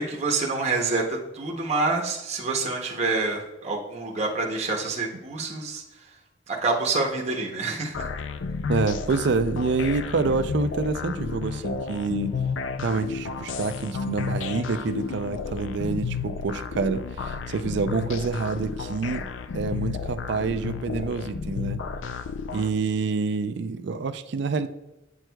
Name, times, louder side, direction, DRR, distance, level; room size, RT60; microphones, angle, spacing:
voice 1, 0.0-5.8 6.5-8.1, right 3 dB, 35° right, -1 dB, 0.7 m, -27 dB
sound 1, 7.9-22.7, left 5 dB, 85° left, 0.4 m, -32 dB
voice 2, 8.7-12.3 12.8-19.2 19.5-21.8 22.5-24.7, right 4 dB, 65° right, 11 dB, 0.4 m, -27 dB
8.8 x 6.1 x 2.2 m, 0.97 s
head